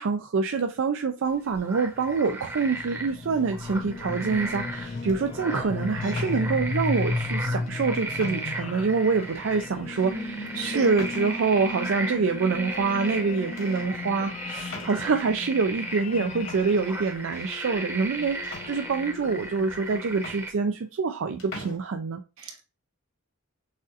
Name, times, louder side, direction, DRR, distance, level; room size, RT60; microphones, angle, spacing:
voice 1, 0.0-22.2, right 4 dB, 65° right, 0.4 m, -26 dB
sound 1, 1.3-20.5, right 2 dB, 15° right, 0.8 m, -37 dB
sound 2, 1.9-20.2, left 3 dB, 30° left, 0.3 m, -35 dB
sound 3, 3.3-3.8 4.6-5.2 6.0-7.0 7.7-7.8 8.2-8.7 9.2-9.3 9.9-10.1 11.0-11.6 12.7-13.2 13.6-13.9 14.7-15.3 16.1-16.2 16.5-17.7 18.4-19.3 19.8-19.9 20.2-21.1 21.4-21.8, left 2 dB, 70° left, 1.6 m, -43 dB
voice 2, 10.1-10.9 22.4-22.6, right 4 dB, 85° right, 1.1 m, -36 dB
6.4 x 2.5 x 2.5 m
head